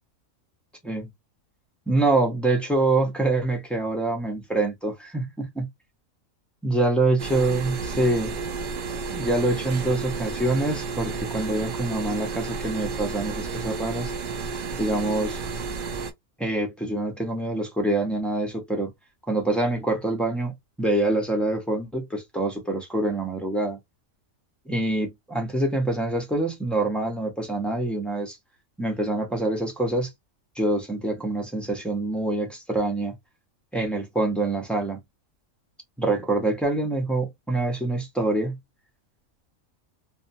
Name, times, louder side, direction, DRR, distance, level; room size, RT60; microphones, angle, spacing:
voice 1, 1.9-5.7 6.6-8.3 9.1-14.1 14.8-15.4 16.4-18.9 19.3-20.5 20.8-23.8 24.7-28.4 28.8-30.1 30.6-33.1 33.7-35.0 36.0-38.6, right 2 dB, ahead, 0.3 m, -25 dB
sound 1, 7.2-16.1, right 4 dB, 90° right, 0.4 m, -32 dB
2.4 x 2.2 x 2.6 m
omnidirectional pair, 1.4 m